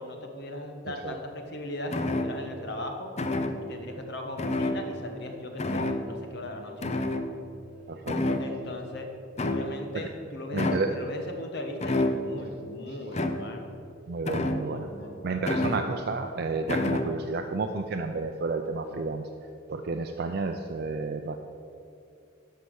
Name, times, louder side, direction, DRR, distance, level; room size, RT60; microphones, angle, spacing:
voice 1, 0.0-3.1 3.7-6.9 8.4-9.1 9.4-13.7 14.5-15.5, left 1 dB, 55° left, 4 dB, 1.2 m, -38 dB
voice 2, 0.9-1.2 7.9-8.4 10.5-10.9 14.1-14.9 15.2-19.2 19.7-21.4, right 3 dB, 55° right, 5 dB, 0.5 m, -31 dB
sound 1, 1.9-2.6 3.2-3.8 4.4-5.3 5.6-6.3 6.8-7.7 8.1-8.8 9.4-10.0 10.6-11.1 11.8-12.5 13.1-13.7 14.3-14.9 15.5-16.2 16.7-17.2, left 1 dB, 35° left, 0.6 m, -29 dB
11.5 x 5.7 x 6.3 m, 2.6 s
head